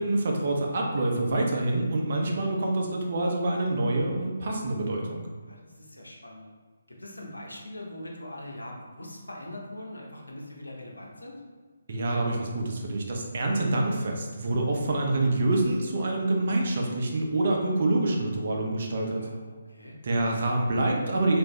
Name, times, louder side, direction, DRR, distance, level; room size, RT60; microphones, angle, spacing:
voice 1, 0.0-5.3 11.9-19.3 20.0-21.4, right 2 dB, 50° right, 0 dB, 0.6 m, -26 dB
voice 2, 5.5-6.5 6.9-11.4 19.2-20.0, left 1 dB, 90° left, -2 dB, 0.8 m, -42 dB
3.3 x 2.5 x 3.1 m, 1.5 s
figure-of-eight pair, 145°, 0 cm